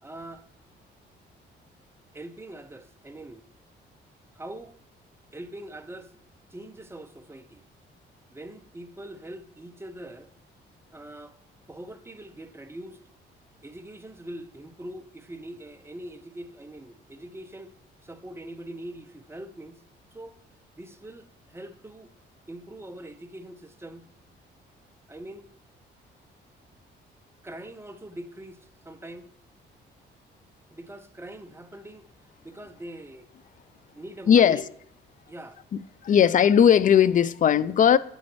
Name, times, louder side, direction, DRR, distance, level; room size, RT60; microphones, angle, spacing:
voice 1, 0.0-0.5 2.1-3.5 4.3-4.7 5.3-6.1 6.5-7.6 8.3-10.3 10.9-11.4 11.7-13.0 13.6-17.7 18.0-19.8 20.1-20.4 20.8-22.1 22.5-24.1 25.1-25.5 27.4-29.3 30.7-33.3 33.9-34.7 35.3-35.6 36.1-36.2, right 1 dB, 10° right, 0.7 m, -42 dB
voice 2, 34.3-34.6 35.7-38.0, left 8 dB, 40° left, 0.4 m, -18 dB
8.3 x 6.2 x 3.0 m
cardioid pair, 90°, 20 cm